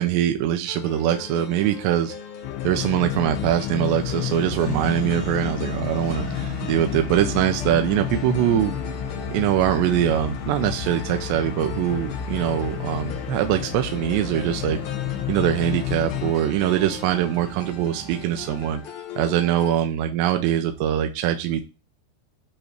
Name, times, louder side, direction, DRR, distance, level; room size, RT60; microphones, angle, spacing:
voice 1, 0.0-2.1 2.6-8.7 9.3-14.8 15.3-18.8 19.2-21.6, right 11 dB, 80° right, 6 dB, 2.7 m, -23 dB
sound 1, 0.7-19.7, left 7 dB, 60° left, 2.0 m, -40 dB
sound 2, 2.4-16.3, left 11 dB, 85° left, 2.7 m, -31 dB
Accelerating revving vroom, 3.7-18.7, right 5 dB, 60° right, 2.2 m, -40 dB
8.7 x 3.1 x 6.5 m, 0.32 s
omnidirectional pair, 5.3 m